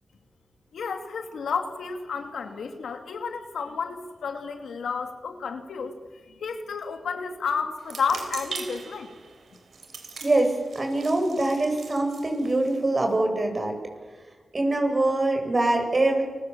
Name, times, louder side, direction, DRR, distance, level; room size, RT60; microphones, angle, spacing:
voice 1, 0.7-6.0 6.2-9.1, left 5 dB, 90° left, 6 dB, 2.5 m, -31 dB
sound 1, 7.8-13.1, right 5 dB, 85° right, 3.7 m, -41 dB
voice 2, 10.2-13.7 14.5-16.2, right 2 dB, 45° right, 4 dB, 7.5 m, -24 dB
29.5 x 21.5 x 7.2 m, 1.5 s
cardioid pair, 45°, 0 cm